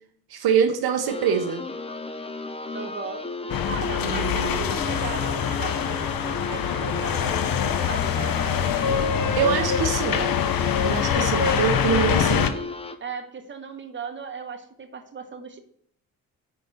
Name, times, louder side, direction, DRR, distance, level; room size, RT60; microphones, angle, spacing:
voice 1, 0.3-1.6 4.0-4.7 9.3-10.2 10.8-12.5, right 7 dB, 70° right, 6 dB, 0.7 m, -24 dB
sound 1, 1.1-13.0, left 3 dB, 15° left, 0.6 m, -35 dB
voice 2, 2.7-3.2 3.7-8.7 9.6-10.3 11.2-11.6 11.9-12.7 13.0-15.6, right 5 dB, 30° right, 6 dB, 0.9 m, -36 dB
sound 2, 3.5-12.5, left 8 dB, 60° left, 0.6 m, -24 dB
5.1 x 3.8 x 5.7 m, 0.69 s
supercardioid pair, 45°, 39 cm